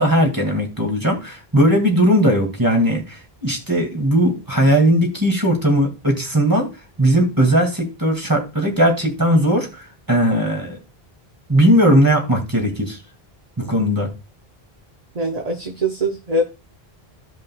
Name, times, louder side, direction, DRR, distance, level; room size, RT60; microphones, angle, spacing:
voice 1, 0.0-6.7 7.0-10.8 11.5-13.0 13.6-14.1, equal, 20° right, 2 dB, 2.0 m, -18 dB
voice 2, 15.2-16.4, right 1 dB, 40° right, 2 dB, 0.9 m, -22 dB
15.0 x 5.2 x 2.2 m, 0.29 s
omnidirectional pair, 1.0 m